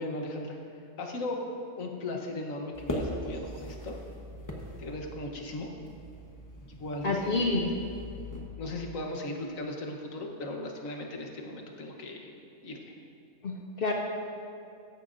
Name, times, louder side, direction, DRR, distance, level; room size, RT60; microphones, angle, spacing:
voice 1, 0.0-1.4 1.8-4.0 4.8-5.7 6.7-7.7 8.6-12.3 12.6-12.9, left 2 dB, 85° left, 2 dB, 1.5 m, -37 dB
sound 1, 2.7-8.4, left 1 dB, 15° left, 1.0 m, -40 dB
voice 2, 7.0-7.7 13.4-13.9, left 3 dB, 55° left, 1 dB, 0.8 m, -28 dB
14.5 x 10.0 x 2.6 m, 2.5 s
omnidirectional pair, 1.3 m